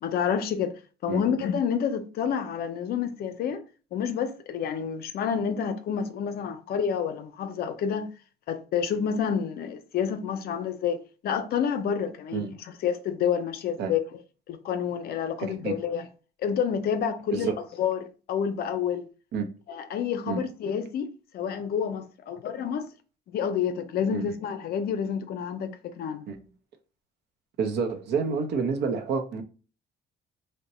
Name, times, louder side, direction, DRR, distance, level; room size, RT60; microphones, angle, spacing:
voice 1, 0.0-3.6 3.9-8.1 8.5-14.2 14.5-16.1 16.4-17.5 17.8-19.1 19.7-22.9 23.3-26.3, left 7 dB, 60° left, 0.5 m, -29 dB
voice 2, 15.4-15.8 17.3-17.5 19.3-19.5 20.3-20.4 24.1-24.2 26.3-26.4 27.6-29.4, right 5 dB, 70° right, 0.6 m, -28 dB
2.8 x 2.1 x 4.0 m
cardioid pair, 130°, 18 cm